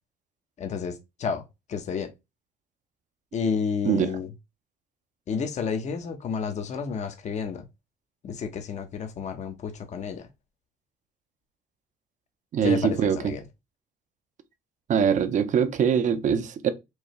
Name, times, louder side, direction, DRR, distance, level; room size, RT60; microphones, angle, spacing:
voice 1, 0.6-1.4 1.7-2.1 3.3-4.3 5.3-7.7 8.2-10.3 12.6-13.4, left 6 dB, 45° left, 0.9 m, -31 dB
voice 2, 12.5-13.2 14.9-16.7, right 7 dB, 45° right, 0.7 m, -23 dB
4.7 x 2.7 x 3.1 m
cardioid pair, 110°, 17 cm